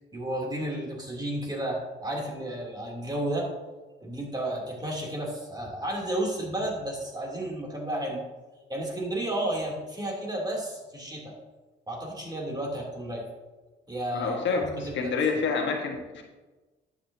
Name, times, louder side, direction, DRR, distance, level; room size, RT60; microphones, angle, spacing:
voice 1, 0.1-3.5 4.0-8.2 8.7-11.3 11.9-13.3 13.9-15.4, right 1 dB, 20° right, -2 dB, 2.9 m, -32 dB
voice 2, 14.1-14.6 14.9-16.2, left 5 dB, 65° left, 2 dB, 1.4 m, -27 dB
11.5 x 7.7 x 2.8 m, 1.2 s
cardioid pair, 90°, 20 cm